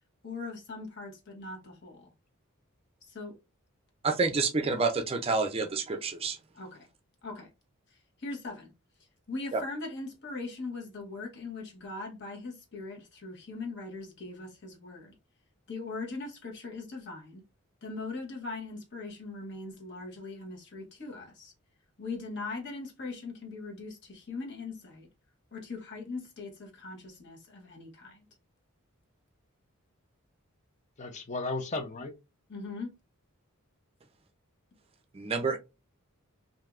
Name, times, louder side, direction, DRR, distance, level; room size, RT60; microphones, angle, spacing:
voice 1, 0.2-2.1 3.1-3.4 6.5-6.9 7.2-7.5 8.2-8.7 9.3-15.1 15.7-17.4 17.8-21.5 22.0-25.1 25.5-28.3 32.5-32.9, left 3 dB, 55° left, 1.1 m, -40 dB
voice 2, 4.0-6.4 9.5-9.6 35.1-35.6, right 4 dB, 25° right, 0.4 m, -28 dB
voice 3, 31.0-32.1, left 3 dB, 35° left, 0.6 m, -34 dB
3.4 x 2.6 x 2.4 m
head